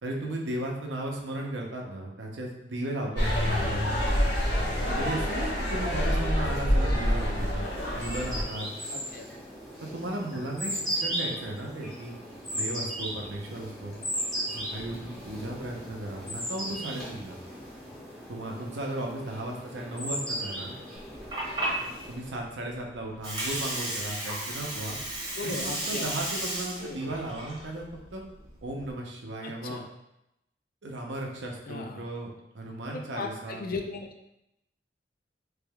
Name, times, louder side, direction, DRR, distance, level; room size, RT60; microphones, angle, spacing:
voice 1, 0.0-3.9 4.8-8.7 9.8-12.1 12.5-14.0 14.5-17.4 18.3-20.7 22.1-25.0 25.4-27.9 28.1-28.2 28.6-29.8 30.8-33.7, right 1 dB, 85° right, 0 dB, 0.6 m, -35 dB
sound 1, 3.1-8.4, equal, 80° left, 1.0 m, -27 dB
sound 2, 7.5-22.4, equal, 5° left, 1.3 m, -37 dB
voice 2, 8.9-9.3 25.4-26.1 26.8-27.1 29.4-29.8 31.7-32.0 32.9-34.1, left 3 dB, 50° left, 4 dB, 0.4 m, -37 dB
Water, 21.0-28.9, right 1 dB, 25° right, 0.9 m, -34 dB
3.4 x 3.2 x 2.2 m, 0.85 s
head